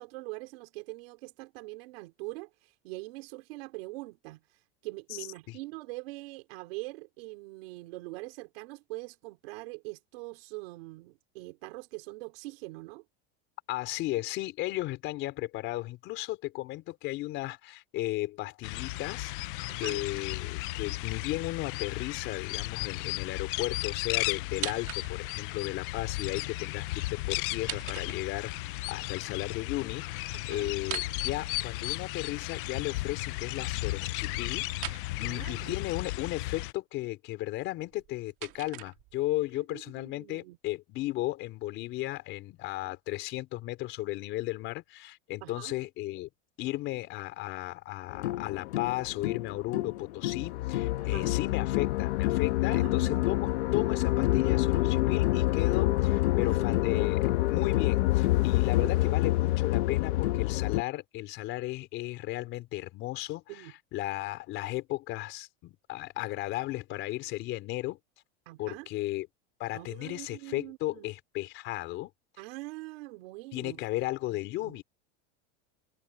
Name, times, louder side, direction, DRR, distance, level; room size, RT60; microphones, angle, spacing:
voice 1, 0.0-13.0 19.7-20.0 30.3-30.7 35.2-35.8 39.7-40.6 42.8-42.9 45.4-45.7 51.0-51.4 52.7-53.3 56.4-56.6 57.0-57.2 58.8-59.0 63.5-63.7 68.4-68.9 69.7-71.0 72.4-73.8 74.3-74.8, right 23 dB, 60° right, 3.2 m, -43 dB
voice 2, 5.1-5.6 13.7-46.3 46.6-68.0 68.6-69.3 69.6-72.1 73.5-74.8, left 17 dB, 35° left, 4.3 m, -35 dB
sound 1, 18.6-36.7, left 20 dB, 50° left, 0.6 m, -35 dB
sound 2, 24.5-25.4 27.4-28.6 30.8-32.1 34.7-35.1 37.8-39.4, right 19 dB, 40° right, 1.8 m, -41 dB
sound 3, 48.1-60.8, left 17 dB, 70° left, 1.5 m, -27 dB
supercardioid pair, 175°, 33 cm